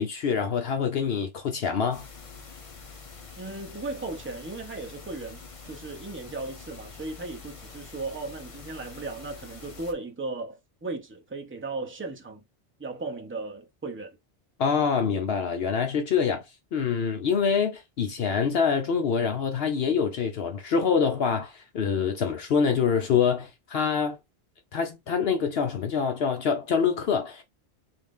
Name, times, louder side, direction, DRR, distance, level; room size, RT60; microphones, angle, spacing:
voice 1, 0.0-2.1 14.6-16.4 16.7-24.2 24.7-27.4, left 6 dB, 65° left, 0.8 m, -25 dB
sound 1, 1.9-9.9, left 4 dB, 35° left, 0.7 m, -45 dB
voice 2, 3.4-12.4 12.8-14.2, right 3 dB, 15° right, 0.6 m, -36 dB
3.8 x 2.6 x 3.6 m
omnidirectional pair, 1.2 m